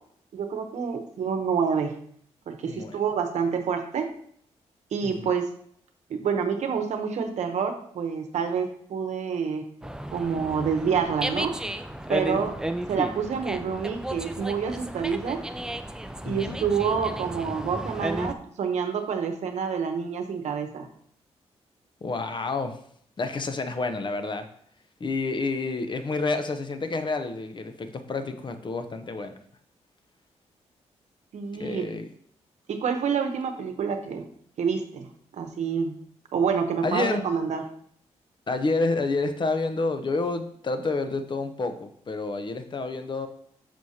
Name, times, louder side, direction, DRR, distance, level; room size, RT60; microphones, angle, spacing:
voice 1, 0.3-2.0 2.5-4.1 4.9-5.5 6.1-9.7 10.1-11.6 12.1-12.5 12.9-15.4 16.2-20.9 31.3-31.9 32.7-34.2 34.6-35.1 35.3-35.9 36.3-37.7, right 6 dB, 75° right, 6 dB, 0.9 m, -27 dB
voice 2, 2.6-3.0 5.0-5.3 12.3-12.5 16.2-16.6 22.0-22.8 23.2-24.5 25.0-29.3 31.6-32.1 36.8-37.2 38.5-43.3, left 3 dB, 40° left, 8 dB, 0.7 m, -29 dB
Dog, 9.8-18.3, right 1 dB, 5° right, 0.5 m, -33 dB
6.2 x 6.1 x 2.8 m, 0.64 s
cardioid pair, 75°, 12 cm